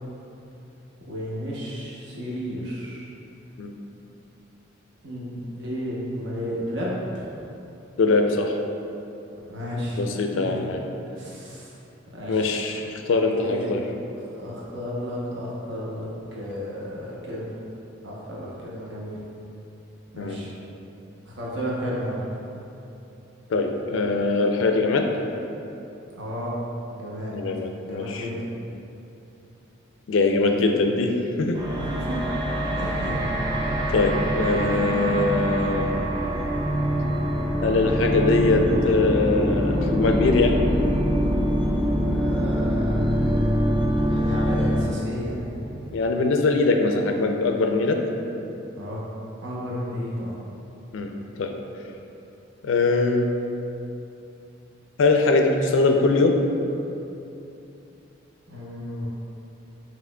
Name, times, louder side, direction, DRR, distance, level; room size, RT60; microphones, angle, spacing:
voice 1, 1.1-3.1 5.0-7.3 9.5-10.0 10.3-10.6 11.1-11.8 12.1-12.5 13.2-13.8 14.3-17.5 18.0-19.2 20.1-20.5 21.3-22.2 26.2-26.5 26.9-27.4 27.8-28.5 31.8-32.2 32.7-33.2 42.1-46.0 48.8-49.0 49.4-50.4 58.5-59.1, equal, 60° right, -5 dB, 0.8 m, -33 dB
voice 2, 8.0-8.6 10.0-10.8 12.3-13.8 20.2-20.4 23.5-25.1 27.3-28.3 30.1-31.6 33.9-35.9 37.6-40.6 45.9-48.0 50.9-51.1 51.4-51.5 52.6-53.3 55.0-56.4, left 3 dB, 70° left, 4 dB, 0.4 m, -22 dB
sound 1, 31.5-44.8, equal, 20° right, 0.4 m, -24 dB
6.0 x 3.0 x 2.2 m, 2.9 s
head